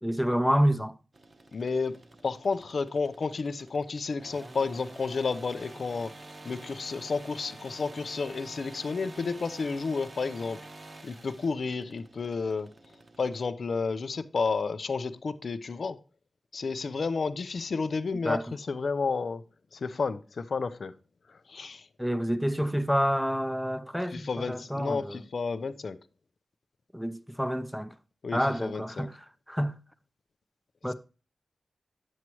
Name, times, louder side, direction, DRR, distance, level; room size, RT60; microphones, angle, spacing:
voice 1, 0.0-0.9 18.2-18.4 22.0-25.2 26.9-27.9 28.3-29.2 29.5-29.8 30.8-30.9, equal, ahead, 0.6 m, -28 dB
sound 1, 1.1-13.5, right 2 dB, 40° right, 0.9 m, -48 dB
voice 2, 1.5-6.1 6.4-10.6 11.0-12.7 13.2-16.0 16.5-19.4 19.7-20.9 21.3-21.9 24.1-26.0 28.2-29.1 30.9-31.0, left 4 dB, 65° left, 0.6 m, -31 dB
9.5 x 7.3 x 3.0 m
wide cardioid pair, 110°, 0 cm